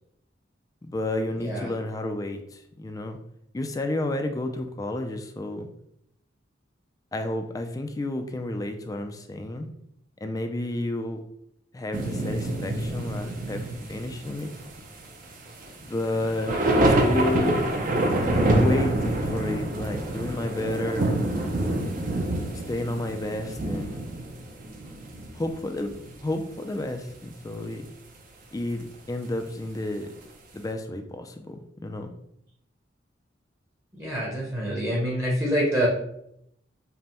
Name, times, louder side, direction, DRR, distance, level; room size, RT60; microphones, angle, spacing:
voice 1, 0.8-3.2 3.5-5.7 7.1-9.7 10.2-11.2 11.7-13.6 13.9-14.5 15.8-17.7 18.5-21.1 22.7-24.1 25.3-25.9 26.2-27.9 28.5-30.1 30.5-31.6 31.8-32.1, left 1 dB, 20° left, 6 dB, 0.3 m, -31 dB
voice 2, 1.4-1.7 33.9-35.9, equal, 15° right, -4 dB, 0.8 m, -26 dB
sound 1, 11.9-25.5 25.8-26.1 27.0-27.1, right 1 dB, 45° right, 0.6 m, -26 dB
5.2 x 2.1 x 2.9 m, 0.75 s
head